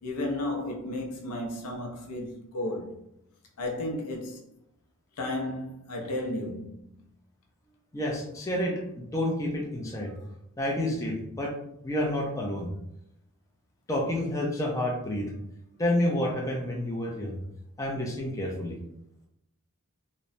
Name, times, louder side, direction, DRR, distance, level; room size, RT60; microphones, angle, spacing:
voice 1, 0.0-3.0 3.6-4.4 5.2-7.0, left 1 dB, 80° left, 0.6 m, -33 dB
voice 2, 7.9-10.1 10.6-11.5 11.8-12.7 13.9-15.3 15.8-17.4 17.8-18.8, left 1 dB, 15° left, 0.4 m, -29 dB
2.9 x 2.1 x 2.5 m
head